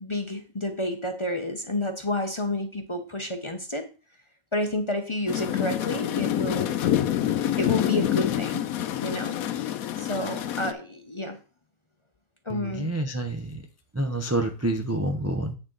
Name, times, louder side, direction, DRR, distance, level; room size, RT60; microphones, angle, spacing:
voice 1, 0.0-3.9 4.5-6.7 7.6-8.6 9.0-9.6 10.0-11.4 12.4-12.9, left 1 dB, 25° left, 5 dB, 0.8 m, -30 dB
sound 1, 5.3-10.7, left 11 dB, 80° left, 1.1 m, -27 dB
voice 2, 12.5-13.6 13.9-15.5, right 1 dB, 15° right, 5 dB, 0.5 m, -28 dB
8.7 x 6.3 x 4.0 m, 0.33 s
omnidirectional pair, 1.5 m